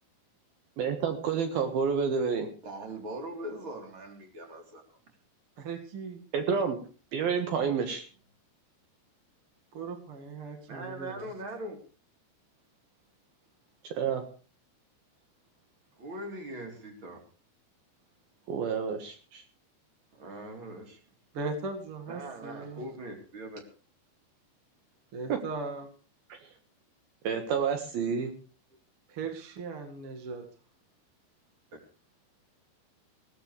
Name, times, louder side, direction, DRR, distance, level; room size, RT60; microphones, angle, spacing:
voice 1, 0.8-2.5 6.3-6.8 7.1-8.1 13.8-14.2 18.5-19.4 25.3-25.4 26.3-26.4 27.2-28.3, right 6 dB, 65° right, 6 dB, 3.1 m, -29 dB
voice 2, 2.6-4.8 10.7-11.8 16.0-17.2 20.2-21.0 22.1-23.6, right 1 dB, 30° right, 3 dB, 3.9 m, -41 dB
voice 3, 5.6-6.2 9.7-11.3 21.3-22.8 25.1-25.9 29.1-30.4, right 3 dB, 45° right, 4 dB, 2.0 m, -38 dB
20.5 x 16.0 x 3.3 m, 0.37 s
omnidirectional pair, 5.0 m